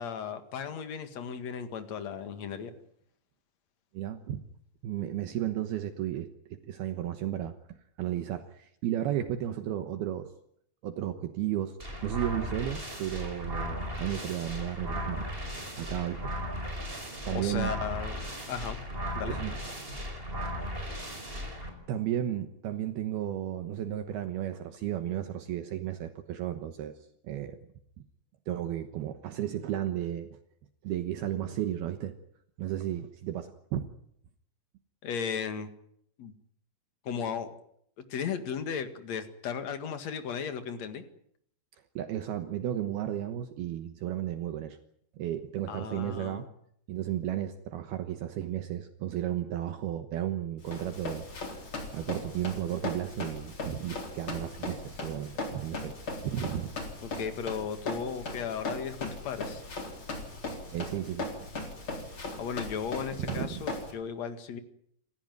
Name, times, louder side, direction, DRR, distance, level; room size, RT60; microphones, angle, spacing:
voice 1, 0.0-2.7 17.3-18.8 19.1-19.4 35.0-35.7 36.2-36.3 37.0-37.5 38.1-41.0 45.7-46.5 57.0-59.6 62.4-64.6, left 7 dB, 50° left, 9 dB, 2.5 m, -35 dB
voice 2, 3.9-4.4 4.8-10.3 10.8-11.8 12.0-16.3 16.6-16.7 17.2-17.7 19.3-19.6 21.9-26.9 27.2-27.6 28.5-30.4 30.8-32.2 32.6-33.9 42.0-44.8 45.2-46.4 46.9-51.3 51.9-56.0 56.2-56.7 60.7-61.3 63.2-63.7, right 11 dB, 70° right, 8 dB, 2.9 m, -34 dB
sound 1, 11.8-21.7, equal, 10° right, 5.4 m, -36 dB
Run, 50.6-63.9, left 2 dB, 30° left, 4.5 m, -38 dB
28.0 x 15.5 x 9.4 m, 0.71 s
omnidirectional pair, 5.1 m